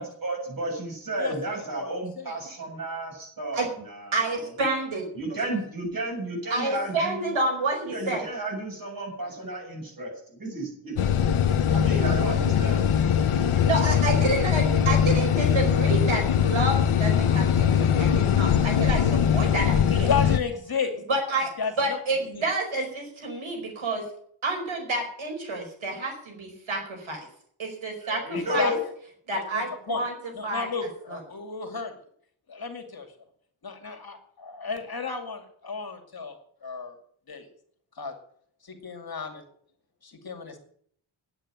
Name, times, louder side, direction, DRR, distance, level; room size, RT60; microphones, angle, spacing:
voice 1, 0.0-4.5 5.1-7.4 7.9-11.1 11.7-12.9 28.0-28.8, right 1 dB, 40° right, 0 dB, 7.4 m, -33 dB
voice 2, 1.2-2.3 19.9-21.0 21.6-22.0 22.3-22.5 28.3-28.7 29.3-30.0 30.3-31.9 32.5-33.1 33.6-36.4 36.6-37.0 37.3-37.5 38.0-38.1 38.6-39.4 40.0-40.6, left 5 dB, 45° left, 5 dB, 2.4 m, -33 dB
voice 3, 4.1-5.1 6.5-8.2 13.7-20.1 21.1-21.5 21.8-24.0 24.4-27.2 27.6-28.8 29.3-30.7 31.1-31.2, right 2 dB, 70° right, 2 dB, 4.9 m, -29 dB
sound 1, 11.0-20.4, left 8 dB, 80° left, 0.9 m, -22 dB
10.0 x 8.9 x 9.9 m, 0.62 s
wide cardioid pair, 135°, 49 cm